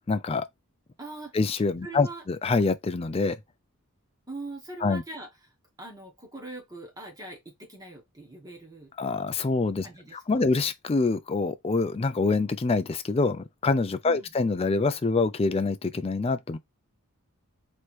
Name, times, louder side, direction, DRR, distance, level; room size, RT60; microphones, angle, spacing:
voice 1, 0.1-0.5 1.3-3.4 4.8-5.0 9.0-9.9 10.1-16.6, left 3 dB, 25° left, 0.3 m, -25 dB
voice 2, 1.0-1.3 1.8-2.2 4.3-5.3 5.8-8.9 9.8-10.4 14.0-14.4, right 2 dB, 15° right, 1.2 m, -42 dB
3.2 x 3.1 x 4.4 m
head